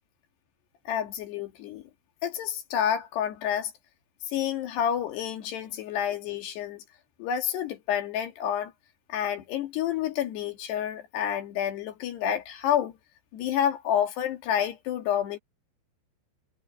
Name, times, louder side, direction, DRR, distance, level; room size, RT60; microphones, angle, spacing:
voice 1, 0.9-1.9 2.2-3.7 4.3-6.8 7.2-8.7 9.1-13.0 13.3-15.4, left 9 dB, 65° left, 4.0 m, -29 dB
omnidirectional pair, 5.4 m